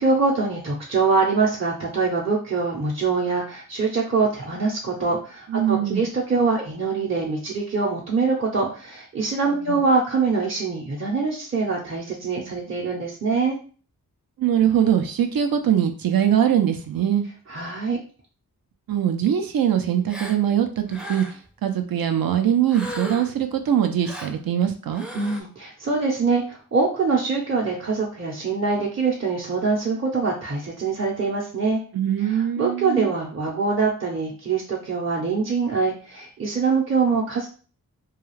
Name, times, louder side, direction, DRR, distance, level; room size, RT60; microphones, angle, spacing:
voice 1, 0.0-13.6 17.5-18.0 25.1-31.8 32.6-37.5, right 4 dB, 35° right, -4 dB, 0.7 m, -24 dB
voice 2, 5.5-6.0 9.7-9.8 12.3-12.6 14.4-17.2 18.9-21.3 21.6-25.0 31.9-33.1, right 9 dB, 70° right, 6 dB, 0.6 m, -22 dB
Gasp, 20.1-20.4 20.9-21.5 22.7-23.4 24.0-24.4 24.9-25.4, equal, ahead, 0.5 m, -36 dB
2.3 x 2.3 x 3.1 m, 0.39 s
cardioid pair, 60°, 36 cm